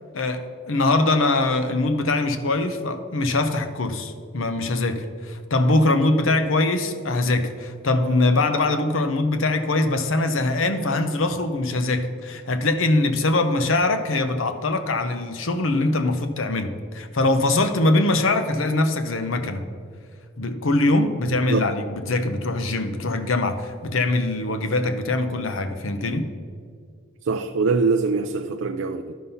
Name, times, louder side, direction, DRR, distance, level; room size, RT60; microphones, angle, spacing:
voice 1, 0.1-19.6 20.4-26.3, left 2 dB, 75° left, 9 dB, 0.8 m, -22 dB
voice 2, 27.3-29.1, right 4 dB, 65° right, 4 dB, 0.4 m, -23 dB
11.5 x 5.5 x 5.6 m, 2.1 s
head